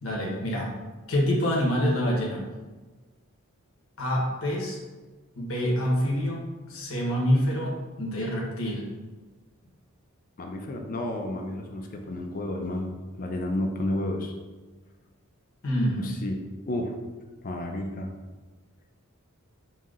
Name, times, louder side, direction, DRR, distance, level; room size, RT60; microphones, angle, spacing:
voice 1, 0.0-0.7 1.1-2.4 4.0-4.8 5.3-6.4 6.7-8.9 15.6-16.2, equal, 65° left, -3 dB, 1.0 m, -26 dB
voice 2, 10.4-14.3 16.0-16.4 16.7-16.9 17.4-18.1, left 1 dB, 40° left, 3 dB, 0.5 m, -31 dB
5.5 x 2.8 x 2.5 m, 1.3 s
head